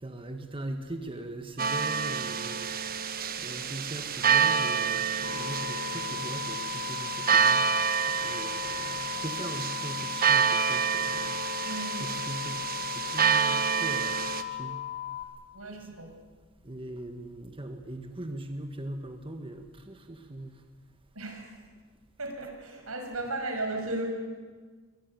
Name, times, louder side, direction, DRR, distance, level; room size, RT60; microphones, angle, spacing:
voice 1, 0.0-2.7 3.4-7.6 8.1-11.4 12.0-12.7 12.9-14.2 14.5-14.8 16.6-20.5, right 1 dB, 25° right, 6 dB, 1.5 m, -40 dB
sound 1, 1.6-14.4, right 6 dB, 45° right, 1.4 m, -28 dB
sound 2, 5.2-15.2, left 12 dB, 45° left, 3.3 m, -37 dB
voice 2, 11.6-12.1 15.5-16.1 21.1-21.5 22.2-24.1, right 2 dB, 90° right, 4 dB, 6.2 m, -35 dB
22.5 x 20.0 x 9.8 m, 1.5 s
head